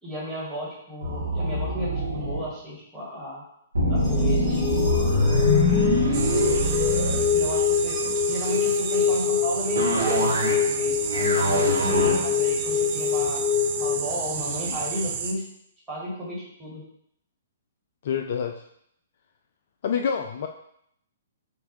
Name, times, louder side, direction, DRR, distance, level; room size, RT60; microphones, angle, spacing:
voice 1, 0.0-3.4 3.9-4.6 5.0-5.3 6.0-6.8 7.1-8.0 8.3-10.9 11.3-13.4 13.8-15.4 15.9-16.8, equal, 10° right, -7 dB, 1.7 m, -34 dB
sound 1, 1.0-2.4 3.7-8.0 9.8-10.7 11.0-12.2, left 1 dB, 70° right, 1.2 m, -24 dB
sound 2, 4.0-14.0, left 7 dB, 15° left, 1.1 m, -25 dB
sound 3, 6.1-15.3, right 6 dB, 35° right, 0.5 m, -31 dB
voice 2, 18.0-18.6 19.8-20.5, left 7 dB, 50° left, 5 dB, 0.3 m, -27 dB
5.9 x 2.5 x 3.1 m, 0.72 s
figure-of-eight pair, 120°, 0 cm